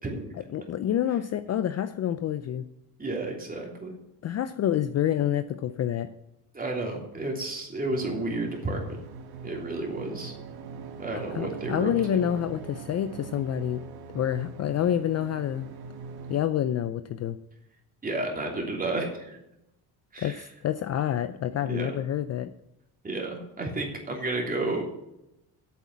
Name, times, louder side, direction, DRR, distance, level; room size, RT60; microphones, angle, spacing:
voice 1, 0.3-2.6 4.2-6.1 11.1-13.8 14.1-15.7 16.3-17.4 20.2-22.5, left 10 dB, 40° left, 12 dB, 0.5 m, -28 dB
voice 2, 3.0-3.9 6.5-9.0 9.4-10.3 11.0-12.3 18.0-19.4 20.1-20.4 21.6-21.9 23.0-24.8, right 2 dB, 20° right, 1 dB, 3.1 m, -32 dB
sound 1, 7.9-16.4, right 4 dB, 60° right, 1.6 m, -41 dB
8.6 x 7.1 x 8.4 m, 0.86 s
cardioid pair, 120°, 42 cm